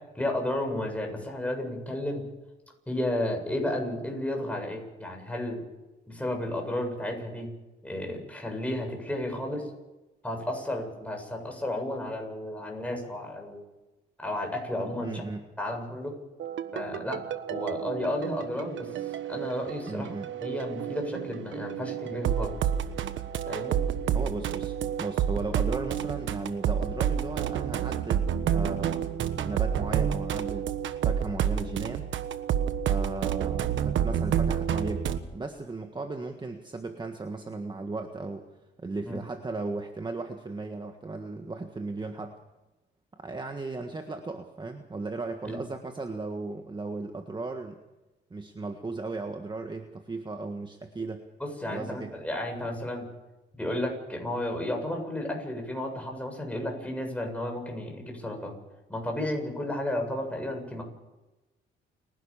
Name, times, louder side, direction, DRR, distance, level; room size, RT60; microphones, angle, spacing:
voice 1, 0.1-2.2 2.9-5.6 6.1-7.5 7.8-9.7 10.2-13.6 14.2-15.2 15.6-16.2 16.7-17.2 17.5-18.9 19.3-20.1 20.4-22.6 23.5-23.8 39.0-39.2 45.4-45.6 51.4-53.1 53.5-58.6 58.9-60.8, left 1 dB, 5° left, 2 dB, 7.5 m, -32 dB
voice 2, 15.0-15.5 19.8-20.3 24.1-30.7 31.0-32.0 32.9-38.5 38.8-42.3 43.1-47.8 48.3-51.2 51.6-52.1, right 3 dB, 20° right, 5 dB, 1.6 m, -36 dB
sound 1, 16.4-35.2, right 9 dB, 75° right, 1.4 m, -29 dB
29.5 x 12.0 x 7.3 m, 1.0 s
cardioid pair, 90°, 20 cm